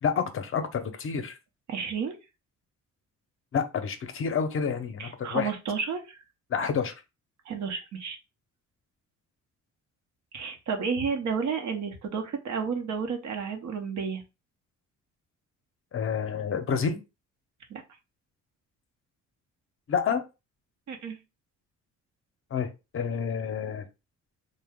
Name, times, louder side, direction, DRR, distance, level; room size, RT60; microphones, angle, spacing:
voice 1, 0.0-1.4 3.5-5.5 6.5-6.9 15.9-17.0 19.9-20.2 22.5-23.9, left 6 dB, 45° left, 7 dB, 0.6 m, -29 dB
voice 2, 1.7-2.2 5.0-6.2 7.5-8.2 10.3-14.2 17.7-17.8 20.9-21.2, right 6 dB, 70° right, 5 dB, 0.8 m, -31 dB
2.8 x 2.2 x 3.4 m, 0.27 s
cardioid pair, 90°, 30 cm